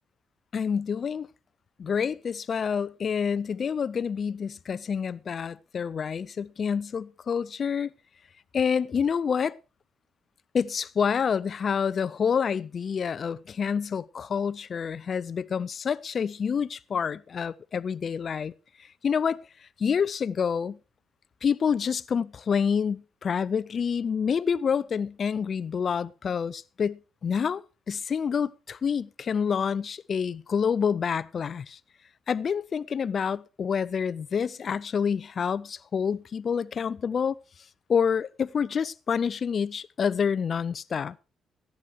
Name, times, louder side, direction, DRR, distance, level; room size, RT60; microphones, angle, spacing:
voice 1, 0.5-1.3 1.8-7.9 8.5-9.6 10.5-18.5 19.0-19.4 19.8-20.8 21.4-31.8 32.3-37.3 37.9-41.2, left 6 dB, 50° left, 0.6 m, -28 dB
14.5 x 10.5 x 4.6 m
cardioid pair, 90°, 0 cm